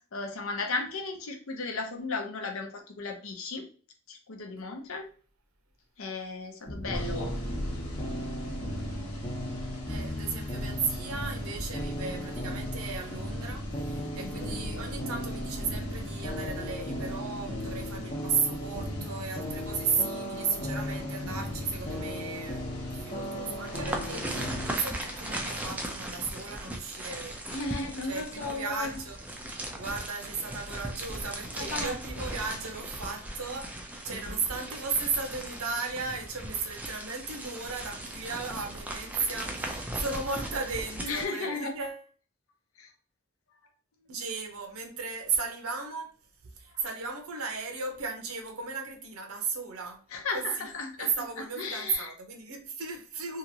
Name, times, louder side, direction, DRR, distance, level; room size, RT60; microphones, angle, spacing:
voice 1, 0.1-2.7 3.0-3.7 4.1-5.0 6.0-7.2 12.2-12.3 14.2-14.5 21.3-21.4 27.5-29.0 31.5-31.9 34.1-34.4 41.0-41.8 42.8-42.9 50.1-51.1 51.6-52.1, left 3 dB, 70° left, 0.7 m, -35 dB
sound 1, 6.7-24.7, equal, 35° left, 0.7 m, -36 dB
sound 2, 6.9-25.6, left 1 dB, 90° left, 1.0 m, -42 dB
voice 2, 9.9-27.3 28.0-29.2 29.8-33.7 34.0-42.0 44.1-46.1 46.5-50.0 50.3-53.4, right 5 dB, 80° right, 0.7 m, -35 dB
sound 3, 23.7-41.2, right 1 dB, 5° right, 0.3 m, -38 dB
2.8 x 2.5 x 2.7 m
head